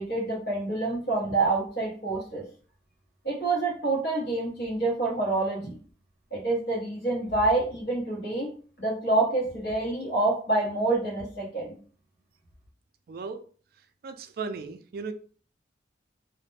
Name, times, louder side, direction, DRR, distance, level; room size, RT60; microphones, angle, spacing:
voice 1, 0.0-2.4 3.2-5.8 6.3-8.5 8.8-11.8, right 2 dB, 60° left, 1.0 m, -27 dB
voice 2, 13.1-13.4 14.0-15.1, right 4 dB, 55° right, 0.3 m, -36 dB
2.4 x 2.1 x 3.2 m
head